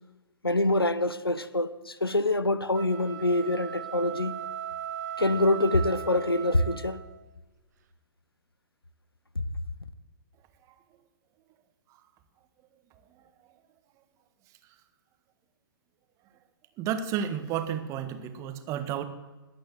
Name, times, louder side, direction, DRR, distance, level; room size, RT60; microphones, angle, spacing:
voice 1, 0.4-4.4 5.2-7.0 9.3-9.4, left 2 dB, 85° left, 1.1 m, -25 dB
sound 1, 2.7-7.2, right 10 dB, 50° right, 1.6 m, -38 dB
voice 2, 16.8-19.0, right 9 dB, 25° right, 1.5 m, -31 dB
21.0 x 8.8 x 7.8 m
figure-of-eight pair, 115°, 12 cm